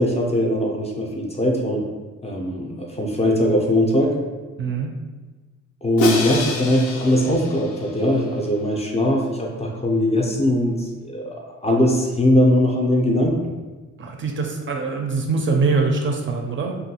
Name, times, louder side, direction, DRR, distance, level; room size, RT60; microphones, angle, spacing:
voice 1, 0.0-1.9 2.2-4.2 5.8-13.5, left 1 dB, 20° left, 0 dB, 0.4 m, -20 dB
voice 2, 4.6-4.9 14.0-16.8, right 4 dB, 40° right, 2 dB, 0.4 m, -23 dB
Crash cymbal, 6.0-8.2, left 3 dB, 80° left, 0.5 m, -27 dB
2.6 x 2.3 x 2.8 m, 1.3 s
cardioid pair, 90°, 30 cm